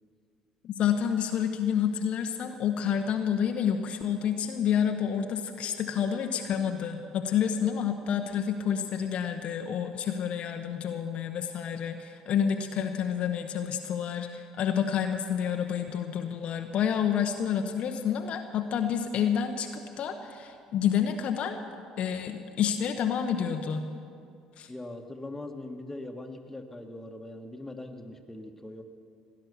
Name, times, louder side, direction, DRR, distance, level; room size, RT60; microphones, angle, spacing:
voice 1, 0.6-21.6 22.0-23.9 24.6-24.7, left 8 dB, 55° left, 5 dB, 0.9 m, -29 dB
voice 2, 24.7-28.8, left 2 dB, 10° left, 3 dB, 1.7 m, -41 dB
17.0 x 10.5 x 6.9 m, 2.4 s
hypercardioid pair, 55°, 2 cm